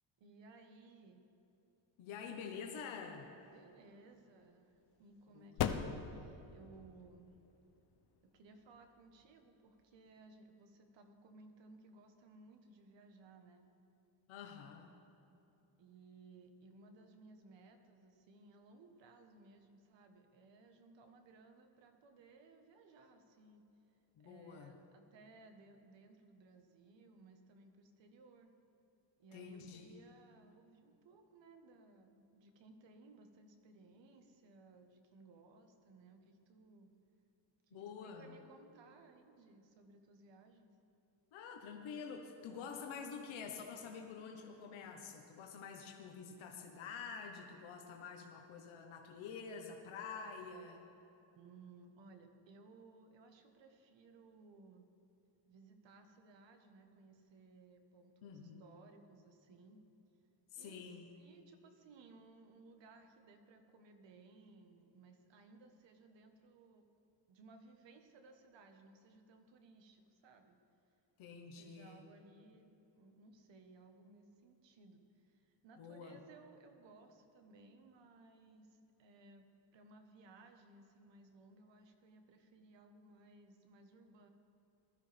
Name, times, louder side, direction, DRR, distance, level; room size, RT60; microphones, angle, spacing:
voice 1, 0.2-1.2 3.5-7.3 8.2-13.7 15.8-23.6 24.2-28.5 29.2-36.9 37.7-40.7 44.8-45.1 51.3-54.9 55.4-59.8 60.5-66.8 67.3-70.6 71.6-79.5 79.7-84.3, right 3 dB, 65° right, 6 dB, 1.4 m, -61 dB
voice 2, 2.0-3.3 5.3-5.6 14.3-14.9 24.1-24.7 29.3-29.9 37.7-38.4 41.3-50.9 58.2-58.7 60.5-61.1 71.2-72.0 75.8-76.2, left 6 dB, 85° left, 2 dB, 1.3 m, -48 dB
sound 1, 2.9-10.3, left 8 dB, 55° left, 0.7 m, -44 dB
20.0 x 13.0 x 3.5 m, 2.9 s
cardioid pair, 175°, 47 cm